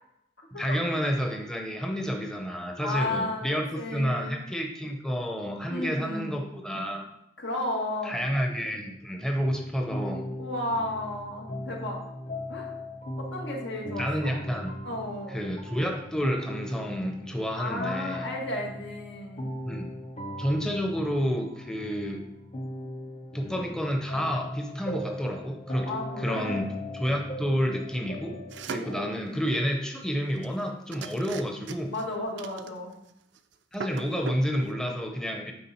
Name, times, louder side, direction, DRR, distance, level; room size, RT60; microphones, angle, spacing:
voice 1, 0.5-7.1 8.0-10.3 14.0-14.7 15.3-18.3 19.7-19.9 20.4-22.2 23.3-26.7 26.9-28.4 28.7-31.9 33.7-35.5, equal, 5° left, 2 dB, 0.7 m, -30 dB
voice 2, 2.8-4.4 5.7-6.4 7.4-8.3 10.4-12.0 12.5-12.8 13.2-14.4 14.8-15.4 17.6-19.4 23.5-23.7 25.9-26.7 28.7-29.3 31.9-33.0, left 1 dB, 80° left, -1 dB, 1.8 m, -33 dB
sound 1, 9.4-28.7, left 1 dB, 35° left, 0.9 m, -38 dB
sound 2, 28.5-29.0 30.4-30.6 30.9-32.0 32.4-33.1 33.4-33.5 33.7-34.5, right 5 dB, 80° right, 0.5 m, -38 dB
9.5 x 3.7 x 4.4 m, 0.79 s
head